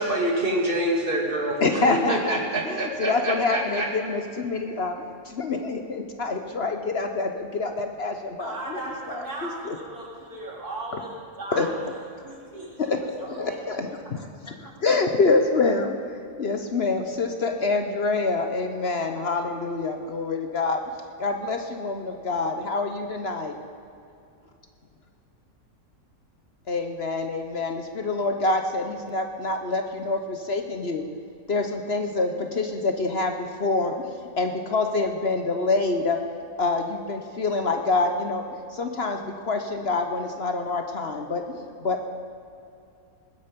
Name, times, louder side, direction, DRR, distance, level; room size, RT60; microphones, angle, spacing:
voice 1, 0.0-3.9, right 1 dB, 35° right, 0 dB, 2.4 m, -26 dB
voice 2, 1.6-8.8 9.1-9.8 11.5-11.7 12.8-16.0 16.4-20.8 21.2-23.5 26.7-31.1 31.5-34.1 34.4-36.2 36.6-38.4 38.7-42.0, left 3 dB, 50° left, 5 dB, 1.1 m, -26 dB
voice 3, 8.4-12.9 13.2-13.6 14.6-14.7, right 2 dB, 85° right, -4 dB, 3.9 m, -37 dB
20.0 x 10.0 x 5.2 m, 2.6 s
omnidirectional pair, 1.6 m